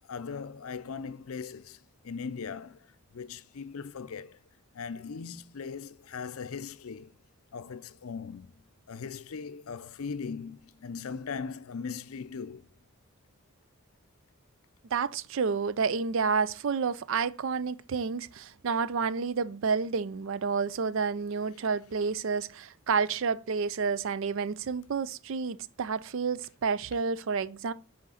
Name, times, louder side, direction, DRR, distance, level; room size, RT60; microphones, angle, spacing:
voice 1, 0.1-2.8 3.1-4.4 4.7-7.1 7.5-8.6 8.9-12.7, left 5 dB, 75° left, 0.5 m, -39 dB
voice 2, 14.9-27.7, right 5 dB, 60° right, 0.4 m, -30 dB
6.2 x 4.3 x 5.6 m
head